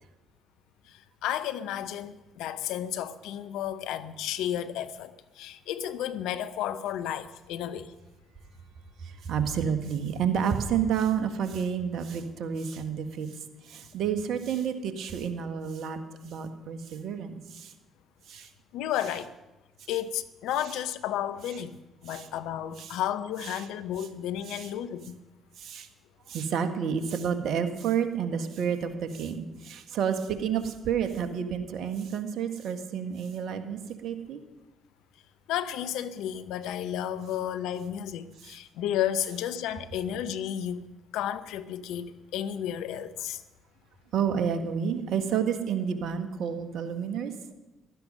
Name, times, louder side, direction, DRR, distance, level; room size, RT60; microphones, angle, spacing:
voice 1, 0.9-7.9 18.7-19.3 19.9-21.8 22.0-25.2 35.5-40.9 41.1-43.4, left 10 dB, 75° left, 12 dB, 0.7 m, -32 dB
voice 2, 9.2-13.3 13.7-16.0 16.2-17.7 18.3-18.5 22.1-22.3 22.8-22.9 24.5-24.7 25.6-25.9 26.3-34.4 44.1-47.3, right 7 dB, 65° right, 8 dB, 1.5 m, -30 dB
15.5 x 12.5 x 5.5 m, 1.0 s
hypercardioid pair, 45°, 0 cm